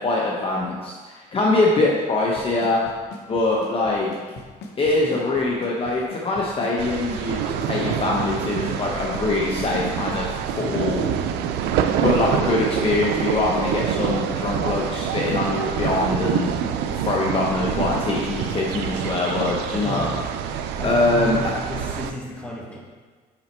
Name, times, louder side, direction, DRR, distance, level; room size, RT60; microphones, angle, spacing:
voice 1, 0.0-2.8 3.3-4.1 4.8-10.3 10.6-11.0 12.0-16.5 17.0-20.1 20.8-21.4, left 2 dB, 35° left, -3 dB, 1.0 m, -23 dB
Drum kit / Snare drum / Bass drum, 2.4-10.3, left 3 dB, 75° left, 1.0 m, -39 dB
sound 1, 6.8-22.1, right 8 dB, 85° right, 0.5 m, -26 dB
voice 2, 10.5-11.0 19.7-20.2 20.8-22.8, left 1 dB, 5° left, -3 dB, 1.5 m, -33 dB
6.0 x 5.6 x 4.5 m, 1.5 s
cardioid pair, 110°, 17 cm